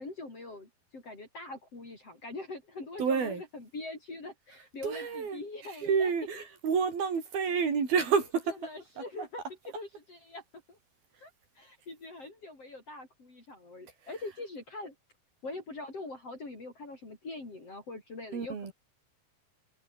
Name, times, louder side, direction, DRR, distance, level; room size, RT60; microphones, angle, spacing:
voice 1, 0.0-6.1 8.6-9.4 9.7-10.8 11.2-11.3 11.6-14.9 15.4-18.7, left 2 dB, 40° left, 8.0 m, -43 dB
voice 2, 3.0-3.4 4.8-8.6 9.0-9.3 18.3-18.7, right 6 dB, 80° right, 6.7 m, -29 dB
omnidirectional pair, 4.3 m